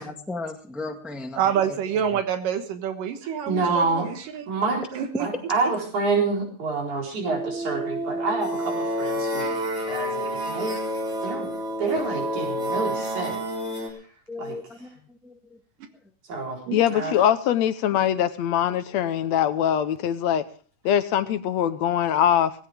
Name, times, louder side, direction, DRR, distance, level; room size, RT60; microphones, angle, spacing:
voice 1, 0.0-1.4 1.7-1.8 11.3-11.5 14.3-15.6, left 3 dB, ahead, 4 dB, 0.4 m, -36 dB
voice 2, 1.4-4.5 4.9-5.3 16.7-17.2, right 8 dB, 85° right, 7 dB, 3.0 m, -27 dB
voice 3, 3.5-4.1 4.5-4.8 5.2-9.5 9.9-10.8 11.2-11.5 11.8-13.4 13.7-14.0 14.4-14.6 16.3-16.6 16.9-17.2, right 4 dB, 65° right, 0 dB, 5.7 m, -27 dB
sound 1, 7.3-13.9, equal, 20° right, 3.1 m, -29 dB
voice 4, 16.7-20.4 20.9-22.5, left 10 dB, 70° left, 11 dB, 1.8 m, -22 dB
18.0 x 17.0 x 3.5 m, 0.40 s
omnidirectional pair, 3.7 m